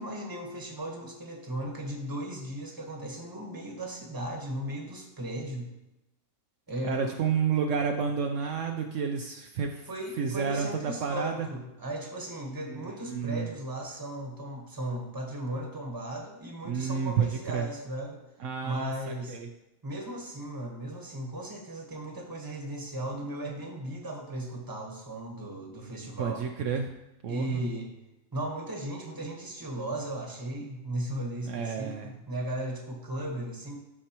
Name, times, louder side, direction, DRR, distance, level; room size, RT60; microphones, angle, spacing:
voice 1, 0.0-5.7 6.7-7.1 9.9-18.2 18.6-19.4 19.8-26.4 27.3-27.9 28.3-33.8, right 1 dB, 15° right, 0 dB, 1.2 m, -36 dB
voice 2, 6.8-9.9 10.2-11.5 12.7-13.5 16.6-17.7 18.4-19.5 26.2-26.9 27.2-27.6 31.5-32.2, right 6 dB, 70° right, 3 dB, 0.9 m, -30 dB
13.0 x 4.5 x 3.0 m, 0.93 s
omnidirectional pair, 1.4 m